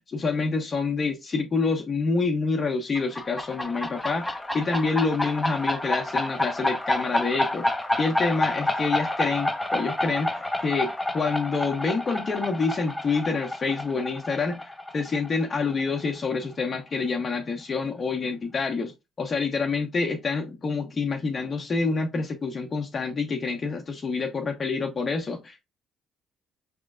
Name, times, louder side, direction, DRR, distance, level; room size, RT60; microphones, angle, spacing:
voice 1, 0.1-7.7 8.0-10.3 10.6-18.9 19.2-25.6, left 4 dB, 40° left, 0.8 m, -27 dB
sound 1, 3.0-16.3, left 1 dB, 10° left, 0.8 m, -29 dB
5.3 x 3.1 x 2.4 m
supercardioid pair, 60°, 0 cm